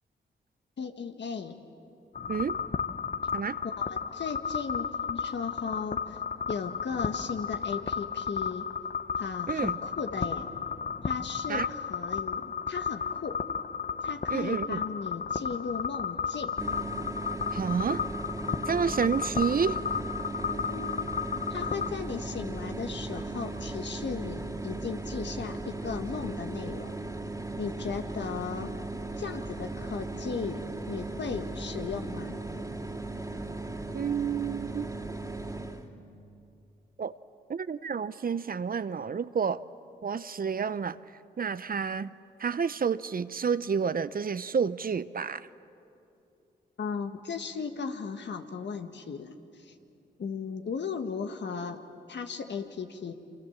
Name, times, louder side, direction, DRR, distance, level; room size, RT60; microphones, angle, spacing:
voice 1, 0.8-1.6 3.6-6.2 6.5-8.7 9.2-10.5 11.0-13.4 14.0-16.5 20.5-21.1 21.5-27.0 27.6-28.7 29.2-32.4 46.8-49.7 50.2-51.8 52.1-53.1, left 5 dB, 65° left, 6 dB, 1.7 m, -36 dB
sound 1, 2.1-21.9, left 6 dB, 45° left, 1.0 m, -33 dB
voice 2, 9.5-9.8 11.5-11.7 14.3-14.8 17.5-18.0 18.7-19.8 33.9-34.9 37.0-37.1 37.5-39.6 40.0-41.0 41.4-42.1 42.4-45.5, right 6 dB, 50° right, 15 dB, 0.7 m, -29 dB
sound 2, 16.6-35.9, right 2 dB, 15° right, 2.8 m, -37 dB
28.0 x 25.0 x 7.4 m, 2.7 s
cardioid pair, 50°, 19 cm